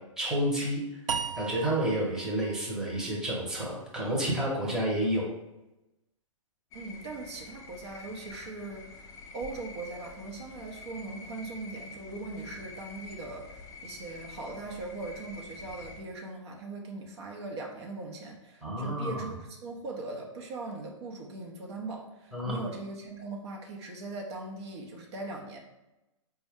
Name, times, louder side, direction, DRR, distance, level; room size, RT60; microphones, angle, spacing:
voice 1, 0.2-0.8 1.4-5.3 18.6-19.2 22.3-22.7, right 1 dB, 5° right, -5 dB, 0.9 m, -30 dB
sound 1, 1.1-4.3, right 6 dB, 70° right, 0.4 m, -38 dB
sound 2, 6.7-16.0, left 3 dB, 20° left, 0.4 m, -47 dB
voice 2, 6.7-25.6, right 3 dB, 55° right, -1 dB, 0.8 m, -40 dB
4.2 x 2.2 x 3.5 m, 0.97 s
hypercardioid pair, 125°, 17 cm